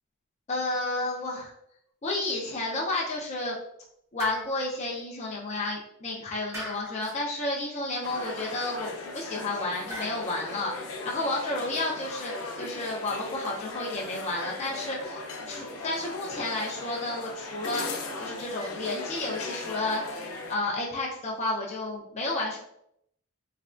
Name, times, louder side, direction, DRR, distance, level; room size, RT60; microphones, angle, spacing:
voice 1, 0.5-1.5 2.0-3.6 4.1-12.3 12.6-15.2 15.5-17.8 18.2-20.2 20.5-22.6, left 2 dB, 30° left, -3 dB, 0.5 m, -31 dB
sound 1, 4.2-4.8 6.5-7.2 9.9-10.4, equal, 15° right, 0.8 m, -39 dB
sound 2, 8.0-20.5, left 3 dB, 85° left, 0.5 m, -38 dB
3.3 x 2.3 x 2.4 m, 0.74 s
head